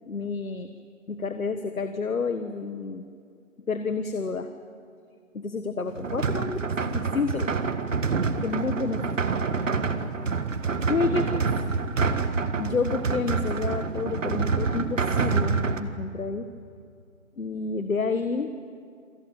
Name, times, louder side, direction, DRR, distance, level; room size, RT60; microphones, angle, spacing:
voice 1, 0.1-0.7 1.1-3.0 3.7-4.5 5.3-7.6 8.4-9.2 10.9-11.4 12.6-16.5 17.4-18.5, left 4 dB, 80° left, 9 dB, 1.6 m, -29 dB
sound 1, 5.9-15.8, right 4 dB, 65° right, 1.8 m, -27 dB
27.0 x 18.0 x 9.1 m, 2.4 s
figure-of-eight pair, 165°, 41 cm